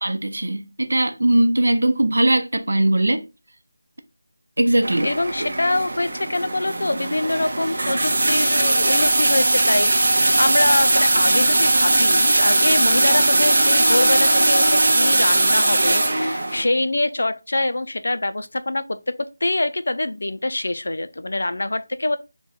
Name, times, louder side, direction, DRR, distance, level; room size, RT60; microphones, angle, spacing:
voice 1, 0.0-3.2 4.6-5.1, right 1 dB, 85° right, 0.7 m, -19 dB
sound 1, 4.8-16.6, right 2 dB, 45° right, 0.6 m, -19 dB
voice 2, 5.0-19.1 19.4-22.2, left 2 dB, 55° left, 0.4 m, -24 dB
3.6 x 2.2 x 4.2 m
figure-of-eight pair, 180°, 0 cm